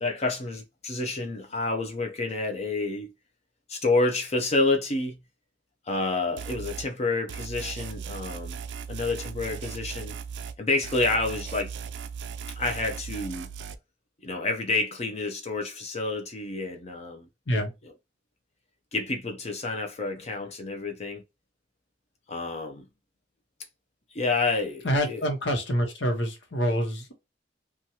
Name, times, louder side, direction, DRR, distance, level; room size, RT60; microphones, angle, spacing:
voice 1, 0.0-3.1 3.7-5.2 5.9-8.6 8.9-10.2 10.6-11.7 12.6-13.5 14.2-17.3 18.9-21.2 22.3-22.8 24.1-25.2, left 3 dB, 35° left, 0.5 m, -29 dB
sound 1, 6.4-6.9 7.3-10.6 10.8-13.8, right 6 dB, 80° right, 0.4 m, -37 dB
voice 2, 24.8-27.1, equal, 85° left, 1.0 m, -26 dB
3.1 x 2.3 x 2.7 m
head